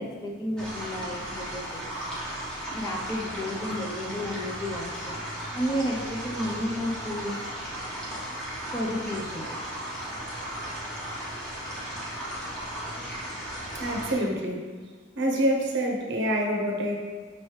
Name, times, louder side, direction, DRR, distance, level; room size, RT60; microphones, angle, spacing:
voice 1, 0.0-1.9 2.7-5.2 5.5-7.5 8.7-9.5, equal, 20° left, -1 dB, 0.4 m, -32 dB
sound 1, 0.6-14.1, right 1 dB, 5° left, 1.0 m, -36 dB
voice 2, 13.7-14.7 15.2-17.0, equal, 55° right, 1 dB, 0.7 m, -27 dB
5.2 x 3.1 x 3.2 m, 1.5 s
head